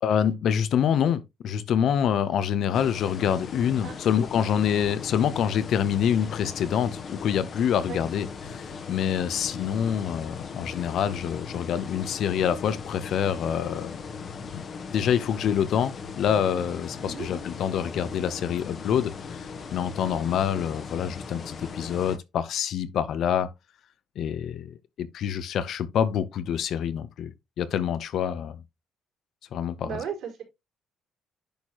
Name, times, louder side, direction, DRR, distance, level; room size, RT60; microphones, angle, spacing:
voice 1, 0.0-14.0 14.5-14.6 14.9-23.5 24.2-28.6 29.5-29.9, left 9 dB, 60° left, 0.8 m, -26 dB
sound 1, 2.7-22.2, left 5 dB, 40° left, 1.1 m, -39 dB
voice 2, 29.8-30.4, right 7 dB, 70° right, 4.0 m, -35 dB
10.5 x 4.5 x 2.9 m
cardioid pair, 125°, 0 cm